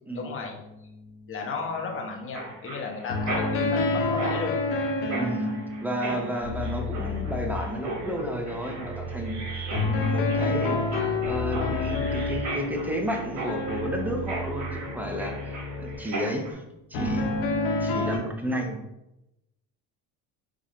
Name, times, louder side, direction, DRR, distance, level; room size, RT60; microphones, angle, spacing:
voice 1, 0.1-0.5 1.3-4.5, left 4 dB, 35° left, 1 dB, 0.7 m, -34 dB
sound 1, 0.5-0.9 3.1-7.2 9.7-15.3 16.9-18.2, left 3 dB, 90° left, 0.7 m, -29 dB
Mechanisms, 2.3-16.5, right 2 dB, 50° right, 1.1 m, -37 dB
voice 2, 5.1-5.6 5.8-10.8 11.2-16.5 16.9-17.3 17.8-18.8, equal, 5° right, 2 dB, 0.4 m, -32 dB
sound 2, 6.4-16.0, left 2 dB, 20° right, 1.2 m, -35 dB
4.2 x 2.5 x 2.4 m, 0.90 s
cardioid pair, 105°, 37 cm